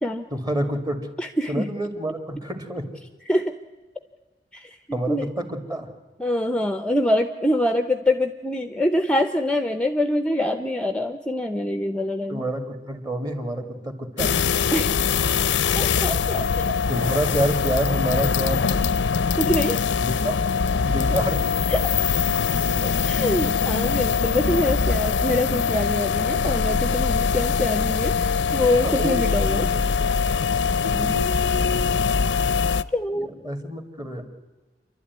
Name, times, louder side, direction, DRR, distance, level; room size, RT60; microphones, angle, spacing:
voice 1, 0.3-1.0 1.5-2.9 4.9-5.9 12.3-14.4 16.9-18.7 20.0-20.4 20.8-21.4 22.7-23.0 28.8-29.8 30.8-31.4 33.1-34.3, right 1 dB, 25° right, 7 dB, 2.2 m, -28 dB
voice 2, 1.2-1.7 3.3-3.6 4.5-5.3 6.2-12.4 14.7-15.0 15.7-16.7 19.4-19.8 21.7-21.9 23.0-29.7 32.9-33.3, left 1 dB, 5° left, 9 dB, 0.7 m, -25 dB
sound 1, 14.2-32.8, left 5 dB, 90° left, 0.6 m, -22 dB
28.5 x 12.0 x 9.5 m, 1.3 s
head